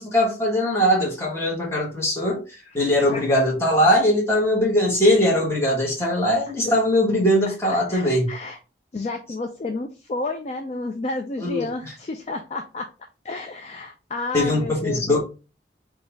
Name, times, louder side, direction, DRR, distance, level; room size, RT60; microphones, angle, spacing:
voice 1, 0.0-8.3 11.4-11.9 14.3-15.2, left 1 dB, 15° left, 1.2 m, -21 dB
voice 2, 7.7-8.6 8.9-12.9 13.2-15.2, left 2 dB, 35° left, 0.4 m, -31 dB
4.0 x 2.3 x 3.9 m
head